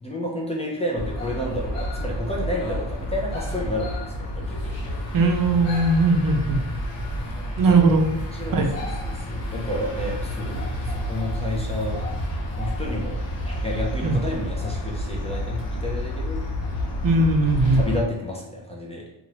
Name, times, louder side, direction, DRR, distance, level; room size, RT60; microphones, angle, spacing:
voice 1, 0.0-4.8 7.7-7.8 8.3-8.7 9.0-12.1 12.6-13.2 13.5-16.4 17.7-19.0, left 1 dB, 15° left, -2 dB, 0.4 m, -30 dB
sound 1, 1.0-18.0, equal, 75° left, 0.9 m, -29 dB
voice 2, 5.1-6.6 7.6-8.0 8.5-8.7 14.0-14.2 17.0-17.8, right 3 dB, 50° right, 3 dB, 0.5 m, -19 dB
3.0 x 2.5 x 2.8 m, 0.88 s
cardioid pair, 105°, 45 cm